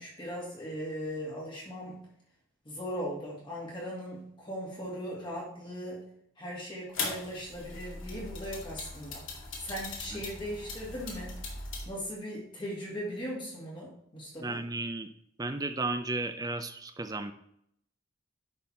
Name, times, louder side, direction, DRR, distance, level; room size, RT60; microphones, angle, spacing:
voice 1, 0.0-2.1 2.6-6.1 6.4-9.2 9.6-11.4 11.9-14.6, equal, 25° left, -5 dB, 2.2 m, -39 dB
sound 1, 6.9-11.9, left 3 dB, 70° left, 2.1 m, -39 dB
voice 2, 14.4-15.1 15.4-17.3, right 2 dB, 20° right, 9 dB, 0.5 m, -34 dB
10.5 x 4.1 x 4.3 m, 0.72 s
head